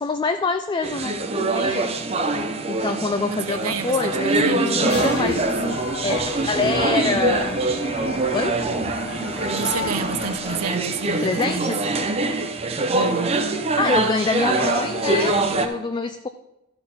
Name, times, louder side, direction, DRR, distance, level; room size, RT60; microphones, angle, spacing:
voice 1, 0.0-1.9 2.7-7.6 8.1-8.6 11.2-11.8 13.8-16.3, left 4 dB, 20° left, 0.3 m, -26 dB
sound 1, 0.8-15.7, right 2 dB, 25° right, 0.7 m, -24 dB
voice 2, 3.3-5.5 9.5-11.8 12.9-13.5, right 5 dB, 75° right, 0.7 m, -30 dB
sound 2, 4.9-10.6, left 4 dB, 45° left, 0.8 m, -33 dB
13.0 x 4.3 x 5.7 m
head